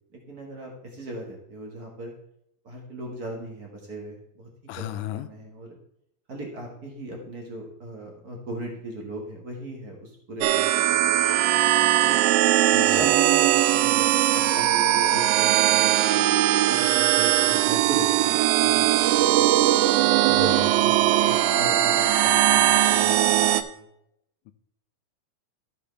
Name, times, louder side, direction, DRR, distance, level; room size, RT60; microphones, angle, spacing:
voice 1, 0.3-2.1 2.6-4.5 4.8-5.8 6.3-11.5 11.8-12.1 12.9-16.2 16.7-19.6 20.0-23.9, right 1 dB, 50° right, 0 dB, 1.1 m, -38 dB
voice 2, 4.7-5.3 12.7-13.1 20.3-20.7 24.5-24.6, left 13 dB, 80° left, 11 dB, 1.9 m, -34 dB
sound 1, 10.4-23.6, right 13 dB, 80° right, 2.1 m, -20 dB
13.0 x 6.7 x 3.3 m, 0.76 s
omnidirectional pair, 4.2 m